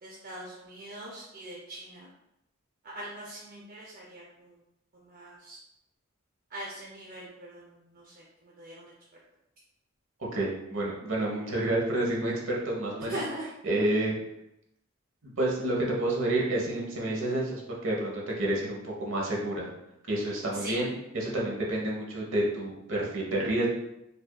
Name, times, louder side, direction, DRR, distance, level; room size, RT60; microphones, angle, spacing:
voice 1, 0.0-2.1 2.8-4.6 4.9-5.6 6.5-8.9 13.1-13.5 20.5-20.8, right 1 dB, 45° right, -3 dB, 0.5 m, -41 dB
voice 2, 10.3-13.2 13.6-14.1 15.2-19.7 20.1-23.7, right 1 dB, 65° right, -3 dB, 0.9 m, -29 dB
4.8 x 2.6 x 2.2 m, 0.86 s
head